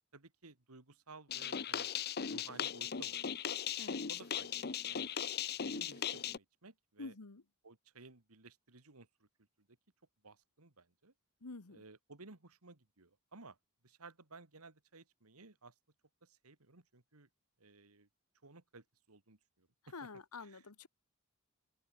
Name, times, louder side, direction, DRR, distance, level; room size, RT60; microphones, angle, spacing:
voice 1, 0.1-1.9 2.2-3.4 4.1-5.1 5.5-7.1 7.6-9.3 9.6-9.7 10.2-11.1 11.7-13.6 13.8-15.7 16.2-17.3 17.6-18.1 18.4-19.7 20.4-20.6, right 3 dB, 80° right, 2.2 m, -57 dB
sound 1, 1.3-6.4, left 8 dB, 45° left, 0.8 m, -38 dB
voice 2, 7.0-7.4 11.4-11.8 19.9-20.9, left 3 dB, 85° left, 1.3 m, -48 dB
open air
head